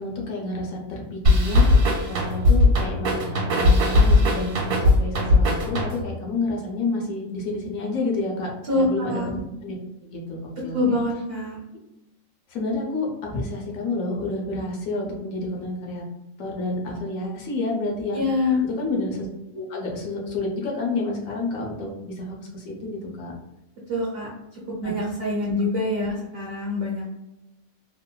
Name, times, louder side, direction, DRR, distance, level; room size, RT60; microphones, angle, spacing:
voice 1, 0.0-9.7 10.1-11.0 12.5-16.0 16.4-18.2 18.8-19.3 19.5-23.3, left 2 dB, 85° left, -1 dB, 1.2 m, -29 dB
sound 1, 1.3-6.2, left 2 dB, 85° right, 1.3 m, -19 dB
voice 2, 8.7-9.3 10.7-11.6 18.1-18.6 23.9-27.1, left 2 dB, 55° right, -4 dB, 0.8 m, -25 dB
3.0 x 2.2 x 2.3 m, 0.96 s
omnidirectional pair, 1.4 m